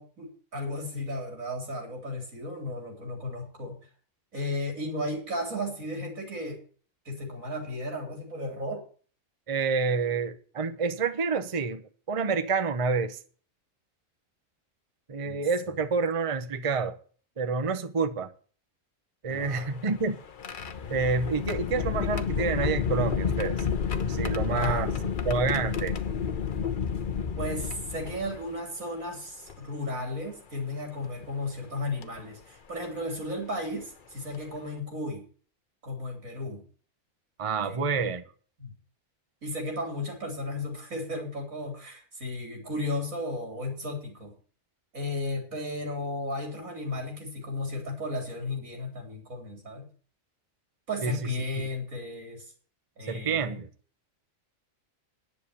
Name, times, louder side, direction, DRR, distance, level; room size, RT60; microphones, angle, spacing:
voice 1, 0.0-3.8 4.3-6.6 7.1-8.8 15.2-15.5 19.3-19.7 24.2-25.2 27.4-35.2 35.8-36.7 37.6-38.1 38.6-38.7 39.4-44.3 44.9-49.9 50.9-52.4 53.0-53.6, left 1 dB, 90° right, 4.1 m, -34 dB
voice 2, 9.5-11.8 12.1-13.2 15.1-17.0 17.4-18.3 19.2-20.1 20.9-23.6 24.0-24.9 25.2-25.9 37.4-38.2 51.0-51.2 53.1-53.7, right 4 dB, 30° right, 0.9 m, -28 dB
sound 1, 19.3-28.6 29.5-29.6 31.0-31.3 32.0-32.2 33.8-33.9 34.3-34.6, left 6 dB, 45° left, 0.9 m, -31 dB
10.5 x 7.0 x 8.4 m
omnidirectional pair, 1.4 m